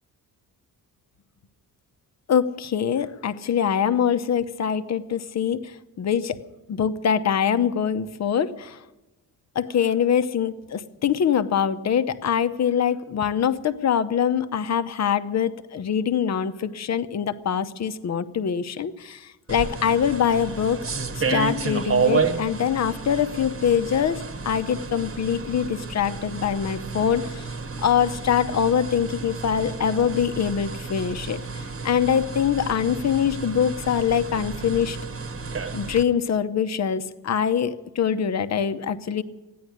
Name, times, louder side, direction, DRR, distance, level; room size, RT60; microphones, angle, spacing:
voice 1, 2.3-6.4 6.7-8.8 9.5-20.8 21.2-27.5 27.8-35.0 35.7-39.2, left 8 dB, 45° left, 12 dB, 0.8 m, -24 dB
sound 1, 19.5-36.0, right 4 dB, 35° right, 1.2 m, -31 dB
14.5 x 10.5 x 9.5 m, 1.1 s
wide cardioid pair, 155°, 38 cm